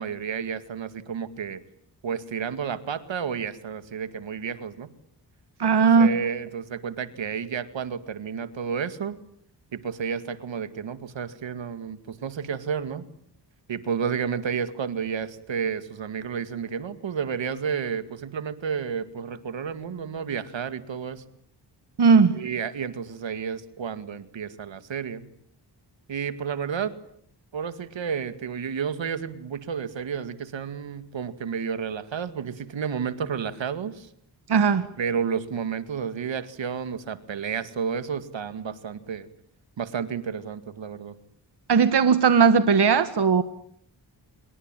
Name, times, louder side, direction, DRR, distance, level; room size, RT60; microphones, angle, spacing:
voice 1, 0.0-1.6 2.0-4.9 5.8-9.2 9.7-13.1 13.7-21.2 22.3-25.3 26.1-26.9 27.5-34.1 35.0-39.3 39.8-41.2, right 7 dB, 80° right, 12 dB, 2.2 m, -31 dB
voice 2, 5.6-6.1 22.0-22.4 34.5-34.9 41.7-43.4, right 5 dB, 65° right, 11 dB, 1.7 m, -18 dB
27.0 x 22.5 x 9.1 m, 0.67 s
cardioid pair, 70°, 44 cm